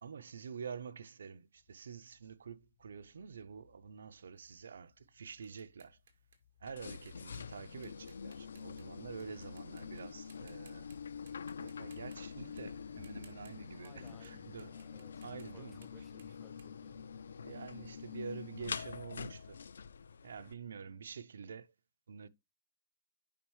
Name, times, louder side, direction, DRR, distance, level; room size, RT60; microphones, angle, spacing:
voice 1, 0.0-6.0 6.6-10.9 11.6-14.7 15.2-15.8 17.4-19.6 20.2-21.7 22.1-22.3, right 6 dB, 75° right, 0.6 m, -48 dB
sound 1, 1.5-19.9, left 7 dB, 35° left, 1.0 m, -72 dB
sound 2, 4.4-9.2 9.6-10.0 10.3-11.0 11.3-14.3 14.6-17.6, right 6 dB, 50° right, 1.9 m, -65 dB
sound 3, 6.6-20.5, left 6 dB, 85° left, 0.4 m, -46 dB
voice 2, 13.7-17.1, left 5 dB, 10° left, 0.6 m, -61 dB
8.5 x 5.4 x 3.1 m
hypercardioid pair, 170°, 0 cm